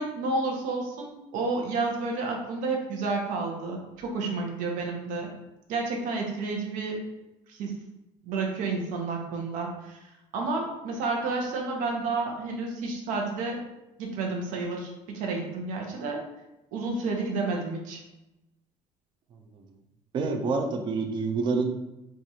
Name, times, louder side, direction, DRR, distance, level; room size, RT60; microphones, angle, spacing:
voice 1, 0.0-5.3 5.7-7.0 7.5-7.8 8.3-10.0 10.3-13.6 14.0-16.2 16.7-18.0, right 3 dB, 75° right, 0 dB, 0.8 m, -30 dB
voice 2, 19.3-19.6 20.1-21.7, right 4 dB, 35° right, 4 dB, 0.4 m, -28 dB
4.5 x 2.4 x 2.7 m, 0.95 s
cardioid pair, 175°, 14 cm